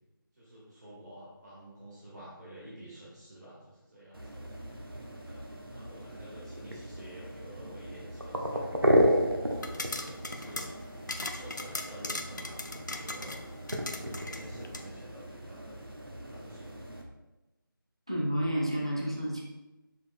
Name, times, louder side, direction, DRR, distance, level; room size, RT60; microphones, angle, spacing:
voice 1, 0.4-4.2 5.2-8.9 9.4-10.7 11.0-12.6 12.8-13.4 13.8-15.8 16.1-17.0, right 1 dB, 50° right, -8 dB, 1.4 m, -50 dB
sound 1, 4.1-17.0, equal, 80° right, 0.9 m, -33 dB
sound 2, 9.5-14.9, left 2 dB, 55° left, 0.4 m, -39 dB
voice 2, 18.1-19.4, equal, 15° right, -4 dB, 0.4 m, -30 dB
6.8 x 3.1 x 2.4 m, 1.0 s
figure-of-eight pair, 165°, 12 cm